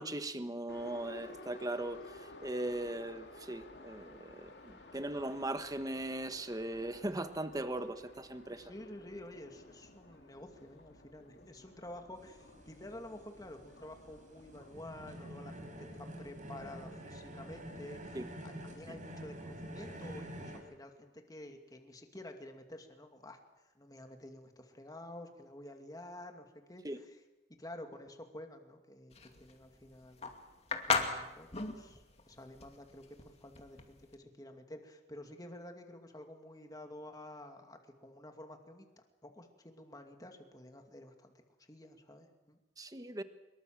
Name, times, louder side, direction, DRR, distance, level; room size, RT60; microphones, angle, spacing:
voice 1, 0.0-2.0 2.4-8.6 18.1-18.2 26.8-27.0 42.8-43.2, right 1 dB, 20° right, 10 dB, 1.3 m, -39 dB
Subway metro underground, 0.7-20.5, left 2 dB, 65° left, 2.7 m, -55 dB
voice 2, 8.5-23.4 23.7-27.2 27.6-30.3 30.9-38.9 39.2-41.3 41.7-42.6, left 1 dB, 20° left, 4 dB, 2.4 m, -50 dB
sound 1, 12.2-20.6, equal, 45° right, 5.2 m, -47 dB
sound 2, 29.1-34.1, left 4 dB, 35° left, 2.5 m, -36 dB
24.5 x 22.5 x 7.6 m, 1.0 s
head